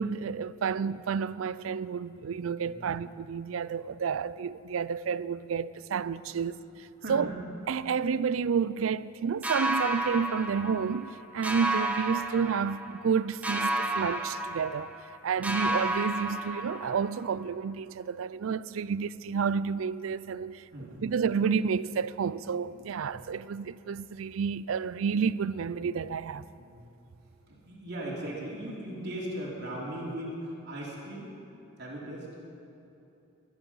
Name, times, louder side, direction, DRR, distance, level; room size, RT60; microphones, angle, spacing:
voice 1, 0.0-6.6 7.1-7.3 7.7-14.9 15.2-20.6 21.0-26.4, right 6 dB, 85° right, 0.4 m, -30 dB
voice 2, 7.0-7.3 15.4-15.5 20.7-21.0 23.1-23.2 26.6-26.8 27.5-31.3 31.8-32.3, right 1 dB, 55° right, 3.2 m, -38 dB
sound 1, 9.4-11.1 11.4-13.1 13.4-15.2 15.4-17.1, right 1 dB, 5° right, 1.0 m, -31 dB
22.0 x 9.7 x 5.5 m
head